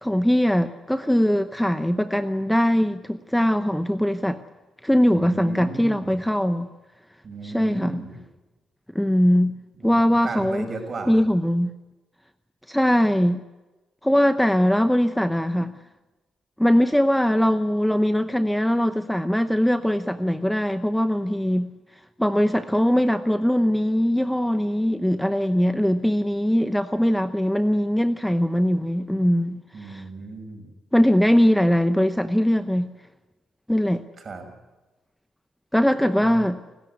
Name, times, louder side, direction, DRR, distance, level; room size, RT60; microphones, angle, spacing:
voice 1, 0.0-4.4 4.8-6.7 7.4-8.0 8.9-9.6 9.8-10.7 11.1-11.7 12.7-13.4 14.0-15.8 16.6-21.7 22.2-30.0 30.9-32.9 33.7-34.0 35.7-36.6, equal, 5° left, 10 dB, 0.8 m, -21 dB
voice 2, 5.1-6.2 7.2-8.2 9.8-11.2 29.7-30.7 34.2-34.5 36.2-36.3, right 3 dB, 40° right, 6 dB, 6.0 m, -35 dB
29.5 x 14.0 x 9.5 m, 1.1 s
cardioid pair, 90°, 0 cm